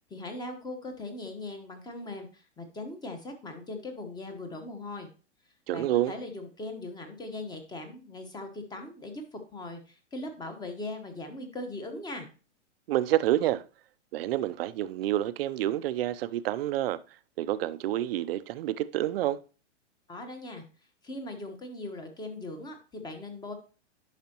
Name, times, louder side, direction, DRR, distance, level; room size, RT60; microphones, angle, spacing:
voice 1, 0.1-5.1 5.7-12.3 20.1-20.6 21.0-23.5, left 2 dB, 10° left, 1.3 m, -40 dB
voice 2, 5.7-6.1 12.9-13.6 14.1-17.0 17.4-19.4, right 13 dB, 55° right, 0.6 m, -28 dB
10.5 x 5.7 x 3.0 m
hypercardioid pair, 130°, 36 cm